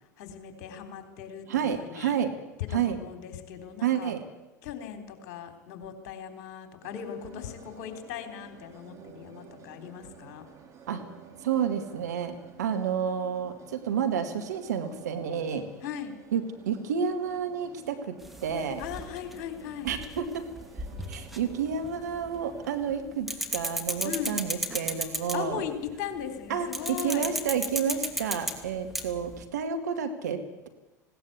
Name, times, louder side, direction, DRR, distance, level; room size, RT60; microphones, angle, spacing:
voice 1, 0.2-2.1 2.7-4.1 4.6-10.4 15.8-16.1 18.8-19.9 24.0-24.4 25.3-27.3, left 9 dB, 55° left, 7 dB, 3.7 m, -38 dB
voice 2, 1.5-2.3 2.7-3.0 3.8-4.2 10.9-11.0 11.4-15.7 16.3-18.8 19.8-20.5 20.8-25.6 26.5-30.7, right 7 dB, 70° right, 7 dB, 2.1 m, -30 dB
sound 1, 6.8-23.0, right 7 dB, 35° right, 4.4 m, -51 dB
sound 2, 18.2-22.4 22.6-25.6 26.7-29.4, right 1 dB, ahead, 2.7 m, -34 dB
19.5 x 18.0 x 8.3 m, 1.1 s
figure-of-eight pair, 80°, 9 cm